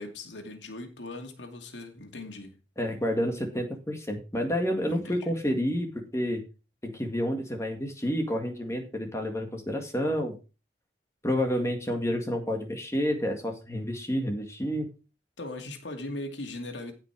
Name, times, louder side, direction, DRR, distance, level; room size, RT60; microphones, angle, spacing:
voice 1, 0.0-2.6 4.8-5.3 15.4-16.9, left 2 dB, 90° left, 2.6 m, -39 dB
voice 2, 2.8-6.4 6.8-10.4 11.2-14.9, equal, 15° left, 2.1 m, -29 dB
15.5 x 5.9 x 4.8 m
head